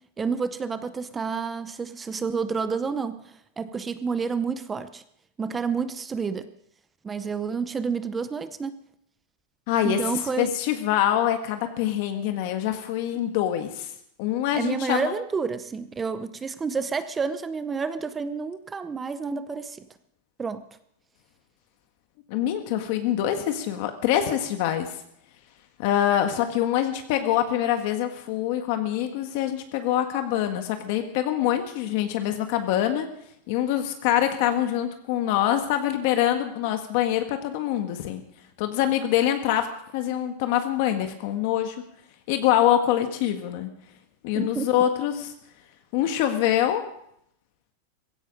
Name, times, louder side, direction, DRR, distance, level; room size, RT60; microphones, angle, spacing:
voice 1, 0.2-3.2 3.6-5.0 5.4-6.5 7.0-8.7 9.8-10.5 14.6-19.9 20.4-20.7 44.3-44.8, right 5 dB, 15° right, 13 dB, 0.7 m, -29 dB
voice 2, 9.7-13.9 14.2-15.1 22.3-25.0 25.8-33.1 33.5-38.2 38.6-39.7 39.9-41.7 42.3-43.7 44.2-45.3 45.9-46.8, left 11 dB, 50° left, 7 dB, 1.5 m, -25 dB
16.0 x 16.0 x 5.2 m, 0.73 s
supercardioid pair, 155°, 0 cm